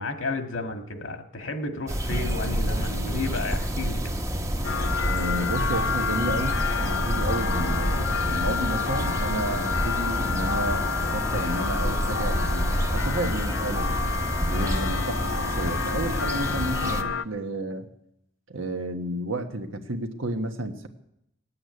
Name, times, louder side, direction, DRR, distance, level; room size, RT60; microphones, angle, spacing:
voice 1, 0.0-4.1, left 2 dB, 90° left, 5 dB, 1.8 m, -32 dB
sound 1, 1.9-17.0, equal, 15° right, 0.9 m, -28 dB
sound 2, 4.6-17.2, left 6 dB, 70° left, 0.6 m, -30 dB
voice 2, 5.0-14.0 14.5-17.9 18.5-20.9, right 1 dB, 90° right, 6 dB, 1.5 m, -31 dB
17.5 x 8.6 x 9.6 m, 0.82 s
head